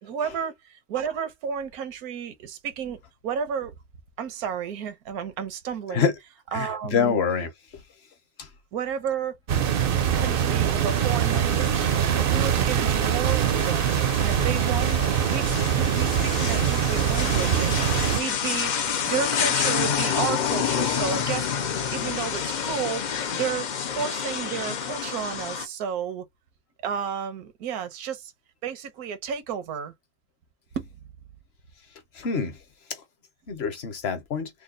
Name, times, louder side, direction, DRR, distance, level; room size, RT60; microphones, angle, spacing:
voice 1, 0.0-3.7 4.2-6.1 6.5-7.2 8.7-9.3 10.1-11.9 12.1-15.0 15.3-18.8 19.1-23.0 23.3-23.7 23.9-26.2 26.8-28.3 28.6-29.9 30.8-30.9, right 7 dB, 85° right, 1.3 m, -32 dB
voice 2, 6.5-7.5 17.3-17.5 32.2-32.6 33.5-34.5, left 6 dB, 50° left, 1.0 m, -26 dB
sound 1, 9.5-18.2, right 9 dB, 60° right, 0.6 m, -23 dB
sound 2, 10.9-25.7, left 7 dB, 80° left, 0.4 m, -29 dB
3.3 x 2.3 x 3.7 m
omnidirectional pair, 1.5 m